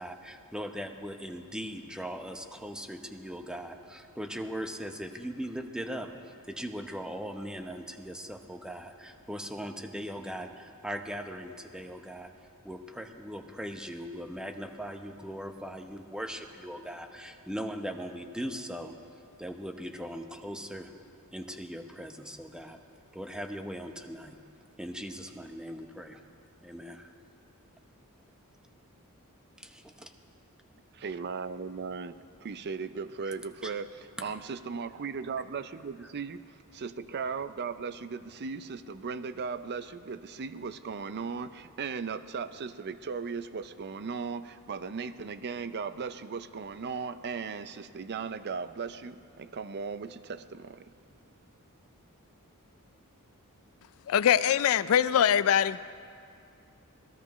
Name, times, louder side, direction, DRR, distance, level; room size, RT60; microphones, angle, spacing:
voice 1, 0.0-12.3 12.6-19.0 19.4-20.9 21.3-22.8 23.1-24.4 24.8-26.2 26.6-27.1 29.6-30.1 33.6-33.7 34.2-34.3, equal, 5° right, 5 dB, 0.9 m, -39 dB
voice 2, 30.9-50.9, right 5 dB, 50° right, 12 dB, 0.5 m, -37 dB
voice 3, 54.1-55.8, left 9 dB, 65° left, 16 dB, 0.4 m, -23 dB
26.0 x 17.5 x 3.1 m, 2.4 s
head